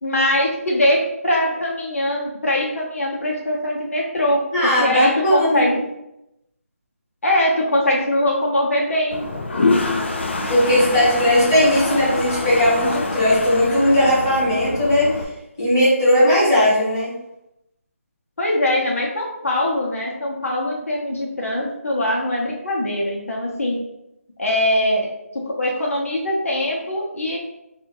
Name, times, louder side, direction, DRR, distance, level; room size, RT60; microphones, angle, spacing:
voice 1, 0.0-5.8 7.2-9.2 18.4-23.8 24.4-25.1 25.3-27.4, left 1 dB, 70° left, -2 dB, 0.8 m, -22 dB
voice 2, 4.5-5.6 10.5-15.1 15.6-17.1, left 1 dB, 15° left, -10 dB, 0.9 m, -17 dB
Toilet flush, 9.1-15.2, left 3 dB, 50° left, 0.4 m, -25 dB
2.7 x 2.5 x 2.9 m, 0.87 s
figure-of-eight pair, 180°, 8 cm